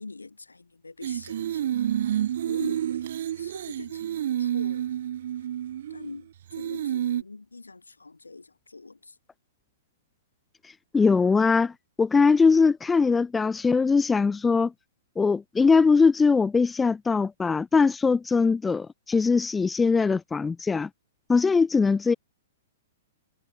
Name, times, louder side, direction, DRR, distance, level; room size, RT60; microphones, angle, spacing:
voice 1, 0.0-1.9 2.5-4.9 5.9-9.2, left 3 dB, 85° left, 5.3 m, -43 dB
sound 1, 1.0-6.1 6.5-7.2, right 11 dB, 60° right, 2.4 m, -29 dB
voice 2, 10.9-14.7 15.2-20.9 21.3-22.1, left 4 dB, 10° left, 1.2 m, -21 dB
figure-of-eight pair, 110°, 0 cm